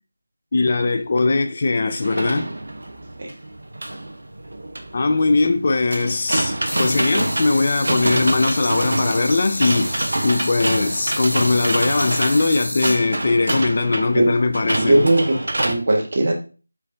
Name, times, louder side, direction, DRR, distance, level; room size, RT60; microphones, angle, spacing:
voice 1, 0.5-2.5 4.9-15.1, left 3 dB, 40° left, 0.3 m, -20 dB
sound 1, 2.0-15.7, right 1 dB, 65° right, 0.6 m, -26 dB
sound 2, 6.6-13.0, equal, 80° left, 0.8 m, -30 dB
voice 2, 14.8-16.3, right 1 dB, 45° right, 1.1 m, -18 dB
4.4 x 3.1 x 2.6 m
figure-of-eight pair, 165°, 0 cm